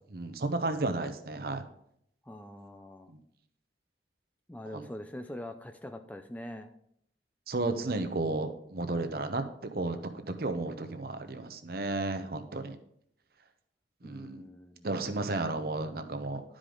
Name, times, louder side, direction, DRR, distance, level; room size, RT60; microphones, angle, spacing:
voice 1, 0.1-1.6 3.1-3.2 4.7-4.9 7.5-12.8 14.0-14.4 14.8-16.4, right 2 dB, 55° right, 8 dB, 0.7 m, -33 dB
voice 2, 2.2-3.1 4.5-6.7 14.0-14.9, left 1 dB, 10° left, 7 dB, 0.4 m, -43 dB
11.5 x 5.0 x 3.8 m, 0.72 s
head